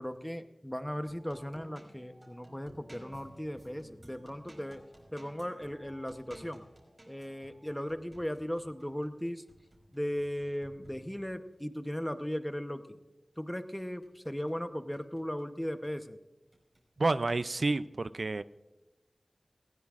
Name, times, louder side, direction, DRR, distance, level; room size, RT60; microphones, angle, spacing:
voice 1, 0.0-4.8 5.1-6.6 7.1-9.4 9.9-13.0 13.4-16.2, equal, 10° left, 9 dB, 0.9 m, -37 dB
sound 1, 0.9-11.6 13.3-14.6 14.9-16.0 16.5-16.8, right 1 dB, 45° right, 5.2 m, -56 dB
voice 2, 17.0-18.4, right 3 dB, 75° right, 14 dB, 0.4 m, -29 dB
19.5 x 16.0 x 2.5 m, 1.1 s
wide cardioid pair, 45°, 0 cm